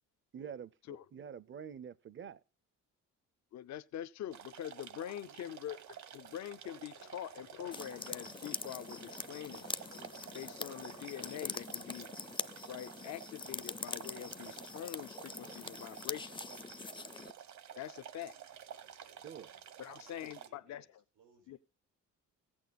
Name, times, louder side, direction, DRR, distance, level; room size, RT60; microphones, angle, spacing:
voice 1, 0.3-2.4 19.2-19.5, right 7 dB, 40° right, 0.6 m, -47 dB
voice 2, 3.5-5.8 6.1-9.7 10.3-12.1 12.7-16.6 17.8-18.4 19.8-20.9 21.5-21.6, left 11 dB, 65° left, 0.6 m, -44 dB
sound 1, 4.3-20.5, right 9 dB, 65° right, 1.3 m, -51 dB
voice 3, 5.2-5.6 18.6-19.6 19.9-20.9 21.1-21.6, right 5 dB, 80° right, 4.6 m, -66 dB
sound 2, 6.6-11.7, left 10 dB, 85° left, 1.3 m, -58 dB
sound 3, 7.7-17.3, left 4 dB, 15° left, 0.5 m, -44 dB
15.0 x 8.8 x 4.1 m
cardioid pair, 90°, 30 cm